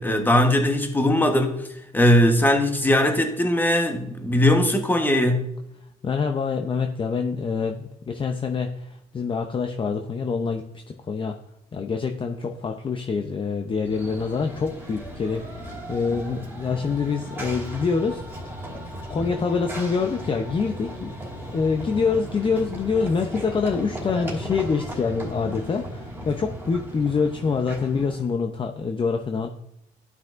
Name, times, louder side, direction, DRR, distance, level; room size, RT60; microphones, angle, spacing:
voice 1, 0.0-1.7 1.9-5.5, left 1 dB, 10° left, 1.2 m, -20 dB
voice 2, 6.0-10.7 11.1-11.3 11.7-15.6 15.9-18.6 19.1-29.5, left 5 dB, 30° left, 0.7 m, -26 dB
Run / Train, 13.8-28.3, equal, 10° right, 2.8 m, -36 dB
12.0 x 5.8 x 2.6 m
cardioid pair, 90°, 17 cm